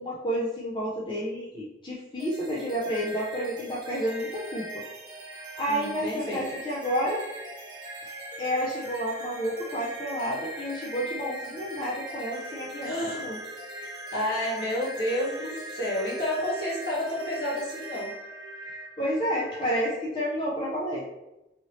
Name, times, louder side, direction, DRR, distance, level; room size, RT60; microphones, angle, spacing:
voice 1, 0.0-4.8 5.6-7.2 8.4-12.9 13.2-13.4 19.0-21.0, equal, 25° left, -5 dB, 0.4 m, -30 dB
sound 1, 2.2-19.9, right 1 dB, 25° right, 0.7 m, -40 dB
voice 2, 5.7-6.4 12.8-13.2 14.1-18.1, left 1 dB, 65° left, -6 dB, 1.2 m, -30 dB
2.8 x 2.6 x 3.0 m, 0.94 s
head